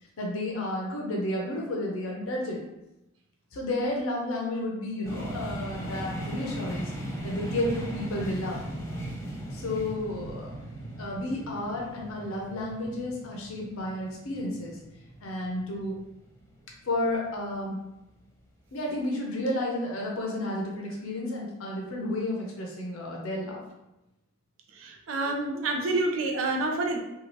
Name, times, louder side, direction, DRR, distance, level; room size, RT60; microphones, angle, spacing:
voice 1, 0.2-2.6 3.5-6.9 7.2-8.6 9.5-10.5 11.0-14.8 15.2-16.0 16.8-17.8 18.7-23.6, left 1 dB, 85° left, -1 dB, 0.6 m, -31 dB
sound 1, 5.0-16.8, right 1 dB, 15° left, 0.6 m, -38 dB
voice 2, 24.7-27.0, right 2 dB, 75° right, 2 dB, 0.5 m, -28 dB
2.8 x 2.3 x 3.0 m, 0.92 s
head